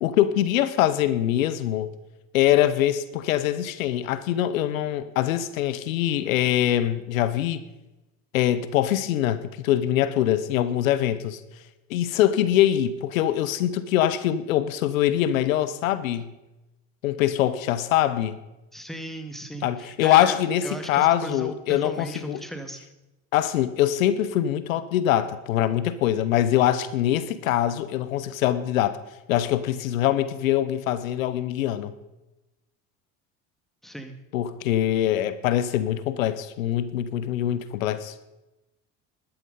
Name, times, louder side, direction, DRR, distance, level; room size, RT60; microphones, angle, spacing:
voice 1, 0.0-1.9 2.3-7.6 8.3-11.4 11.9-16.3 17.0-18.4 19.6-22.4 23.3-29.0 29.3-31.9 34.3-38.1, left 12 dB, 90° left, 14 dB, 0.9 m, -23 dB
voice 2, 18.7-22.8 33.8-34.2, right 1 dB, ahead, 6 dB, 2.2 m, -37 dB
13.0 x 12.0 x 5.5 m, 1.0 s
hypercardioid pair, 75°, 39 cm